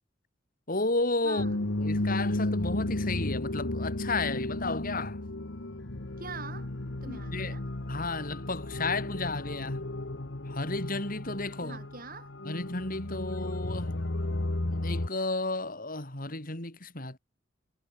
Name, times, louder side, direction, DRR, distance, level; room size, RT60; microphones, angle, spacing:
voice 1, 0.7-1.4 1.8-5.2 7.0-7.6 7.9-9.8 10.5-11.8 12.4-14.0 14.7-17.2, left 2 dB, 50° left, 4.9 m, -33 dB
voice 2, 1.2-1.6 6.2-6.7 7.0-7.6 11.6-12.3, right 4 dB, 50° right, 6.8 m, -43 dB
sound 1, 1.4-15.1, left 1 dB, 70° left, 1.5 m, -33 dB
head